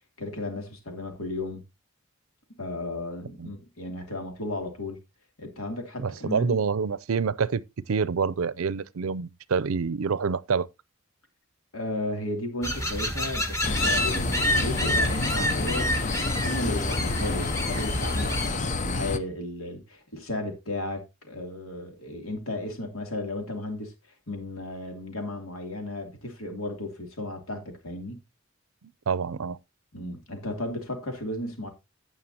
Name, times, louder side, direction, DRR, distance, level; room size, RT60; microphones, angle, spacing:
voice 1, 0.2-1.6 2.6-5.0 5.4-6.6 11.7-23.9 24.3-28.2 29.9-31.7, left 1 dB, 90° left, 2.9 m, -34 dB
voice 2, 6.0-10.7 29.1-29.6, right 5 dB, 85° right, 0.5 m, -27 dB
sound 1, 12.6-18.5, equal, 15° left, 1.5 m, -28 dB
sound 2, 13.6-19.2, left 3 dB, 35° left, 0.6 m, -29 dB
16.5 x 5.7 x 2.8 m
head